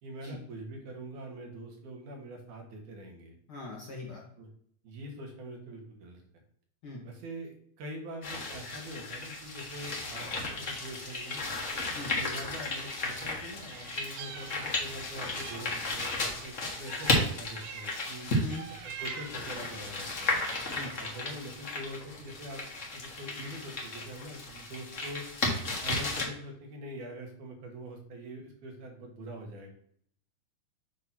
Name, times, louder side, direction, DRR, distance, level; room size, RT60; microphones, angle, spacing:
voice 1, 0.0-3.4 4.4-4.5 4.8-6.2 7.0-10.3 10.6-11.4 12.2-18.3 19.0-20.4 21.0-22.6 22.9-25.2 25.8-29.7, right 1 dB, 70° right, 1 dB, 2.9 m, -44 dB
voice 2, 3.5-4.2 6.8-7.0 11.9-12.1 18.4-18.6 20.7-20.9, left 2 dB, 55° left, -3 dB, 1.7 m, -41 dB
sound 1, 8.2-26.2, left 2 dB, 70° left, 0.7 m, -34 dB
Meow, 13.6-15.0 15.4-18.1 18.5-19.5 20.0-20.9, right 8 dB, 90° right, 2.4 m, -46 dB
8.3 x 2.9 x 6.0 m, 0.64 s
omnidirectional pair, 3.7 m